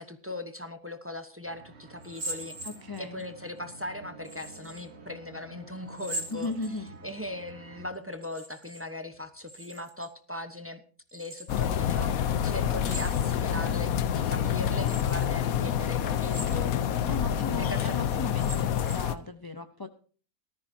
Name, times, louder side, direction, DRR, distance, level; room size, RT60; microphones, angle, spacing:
voice 1, 0.0-2.6 3.0-6.5 7.0-10.8 11.1-16.8 17.6-18.0, left 1 dB, 10° right, 9 dB, 0.9 m, -39 dB
sound 1, 1.4-7.9, right 3 dB, 50° right, 1.6 m, -49 dB
sound 2, 2.0-3.3 4.3-4.9 5.9-7.1 8.1-8.9 9.1-10.1 11.1-11.7 12.8-13.6 14.1-14.2 14.8-15.3 16.1-16.9 17.4-17.5 18.2-19.2, right 1 dB, 90° right, 2.9 m, -41 dB
voice 2, 2.6-3.2 6.3-6.9 17.1-19.9, left 2 dB, 20° left, 7 dB, 0.6 m, -37 dB
sound 3, 11.5-19.1, left 9 dB, 90° left, 1.2 m, -27 dB
18.5 x 13.5 x 2.8 m, 0.41 s
omnidirectional pair, 1.4 m